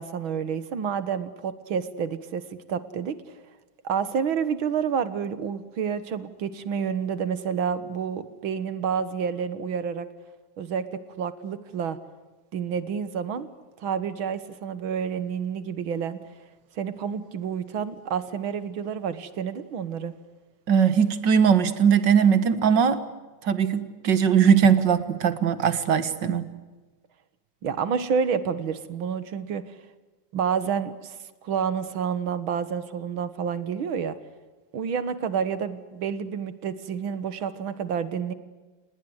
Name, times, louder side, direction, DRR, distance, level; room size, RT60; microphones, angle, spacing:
voice 1, 0.0-3.4 3.8-10.1 10.6-12.0 12.5-13.5 13.8-16.2 16.8-20.1 27.6-29.7 30.3-31.2 31.4-34.2 34.7-38.3, right 7 dB, 85° right, 13 dB, 2.2 m, -29 dB
voice 2, 20.7-23.0 23.4-26.5, right 7 dB, 65° right, 12 dB, 2.1 m, -20 dB
29.0 x 20.0 x 8.0 m, 1.2 s
omnidirectional pair, 2.2 m